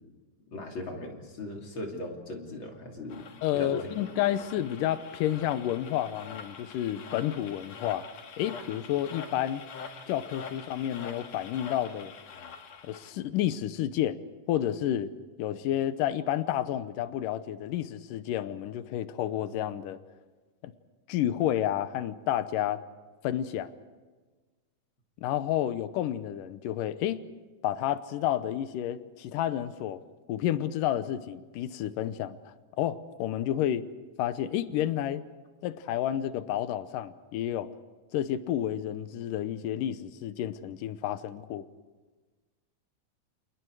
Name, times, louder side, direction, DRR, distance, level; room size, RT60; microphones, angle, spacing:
voice 1, 0.5-3.3 3.5-4.1, left 1 dB, 40° left, 3.4 m, -38 dB
sound 1, 3.1-13.1, left 6 dB, 60° left, 2.7 m, -45 dB
voice 2, 3.4-8.0 8.4-9.6 10.1-12.1 12.8-14.2 14.5-15.1 15.4-20.0 20.6-20.7 21.1-22.8 23.2-23.7 25.2-27.2 27.6-30.0 30.3-33.8 34.2-35.2 35.6-37.7 38.1-41.7, left 11 dB, 85° left, 2.5 m, -30 dB
29.0 x 29.0 x 4.8 m
omnidirectional pair, 3.7 m